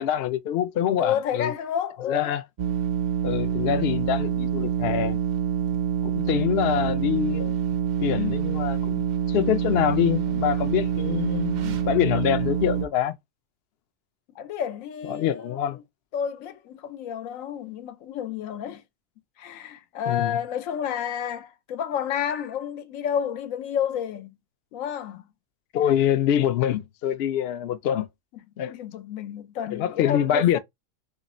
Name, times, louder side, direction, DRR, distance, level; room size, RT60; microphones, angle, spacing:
voice 1, 0.0-1.5 2.1-2.4 3.2-5.2 6.0-7.6 8.0-13.1 15.1-15.8 20.1-20.4 25.7-28.1 28.6-28.7 29.7-30.6, left 10 dB, 60° left, 0.7 m, -25 dB
voice 2, 1.0-2.3 14.4-15.6 16.1-18.8 19.4-24.4 24.7-25.2 28.3-28.4 28.7-30.6, left 8 dB, 80° left, 1.0 m, -30 dB
sound 1, 2.6-12.9, right 9 dB, 85° right, 0.4 m, -26 dB
3.7 x 2.5 x 4.1 m
omnidirectional pair, 1.4 m